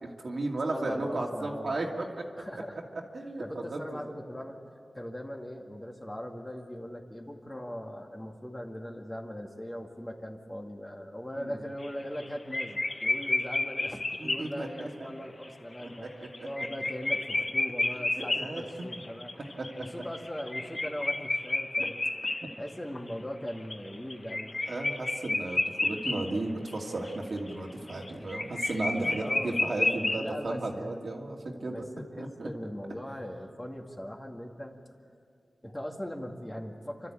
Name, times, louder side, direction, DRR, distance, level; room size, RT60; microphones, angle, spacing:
voice 1, 0.0-2.3 3.1-3.4 3.7-4.0 11.4-11.6 14.2-14.9 15.8-16.3 18.2-18.6 19.6-19.7 24.7-31.8 32.2-32.5, right 2 dB, 70° right, 0 dB, 2.4 m, -34 dB
voice 2, 0.7-1.8 2.4-2.8 3.4-4.6 4.9-22.0 22.6-24.5 29.2-29.6 30.2-31.1 31.6-34.7 35.6-37.1, equal, 15° left, 1 dB, 2.2 m, -40 dB
sound 1, 11.8-12.3 12.5-14.8 15.4-15.5 15.8-15.9 16.2-23.1 23.5-26.4 26.7-26.8 27.0-30.3, left 2 dB, 40° left, 0.9 m, -31 dB
29.5 x 12.5 x 8.6 m, 2.3 s
wide cardioid pair, 70°, 0 cm